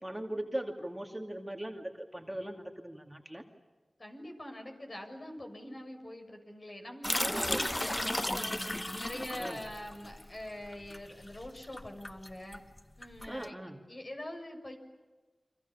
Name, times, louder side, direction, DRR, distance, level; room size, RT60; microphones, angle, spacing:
voice 1, 0.0-3.4 7.2-7.7 9.4-9.6 13.3-13.8, right 1 dB, 10° right, 2 dB, 2.7 m, -39 dB
voice 2, 4.0-12.6 13.0-13.6 13.9-14.8, left 1 dB, 45° left, 3 dB, 6.5 m, -44 dB
sound 1, 7.0-13.4, left 1 dB, 20° left, 0.8 m, -35 dB
30.0 x 25.5 x 7.2 m, 1.3 s
wide cardioid pair, 55°, 0 cm